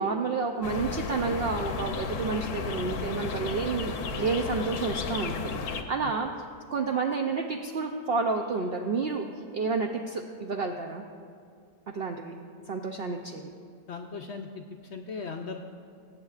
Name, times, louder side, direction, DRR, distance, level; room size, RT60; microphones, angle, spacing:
voice 1, 0.0-3.9 4.2-5.3 5.7-6.3 6.7-9.2 9.5-11.0 11.9-12.3 12.7-13.5, right 4 dB, 70° right, 3 dB, 0.5 m, -30 dB
sound 1, 0.6-5.8, left 4 dB, 85° left, 1.3 m, -33 dB
voice 2, 13.9-15.7, left 4 dB, 65° left, 4 dB, 0.7 m, -38 dB
21.5 x 8.1 x 2.4 m, 2.3 s
omnidirectional pair, 1.6 m